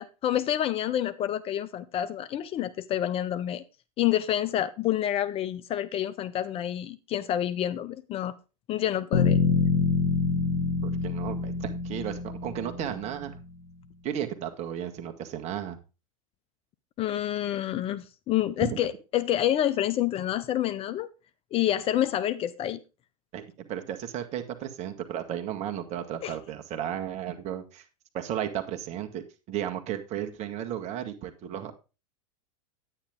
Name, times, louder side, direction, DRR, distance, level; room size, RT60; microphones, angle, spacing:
voice 1, 0.0-3.6 4.0-8.4 8.7-9.4 17.0-21.1 21.5-22.8 26.2-26.3, left 12 dB, 30° left, 0.6 m, -28 dB
sound 1, 9.1-13.2, left 5 dB, 65° left, 2.6 m, -26 dB
voice 2, 10.8-13.4 14.0-15.8 18.6-18.7 23.3-27.8 28.1-31.7, right 10 dB, 40° right, 1.8 m, -34 dB
9.8 x 9.2 x 3.7 m
hypercardioid pair, 100°, 18 cm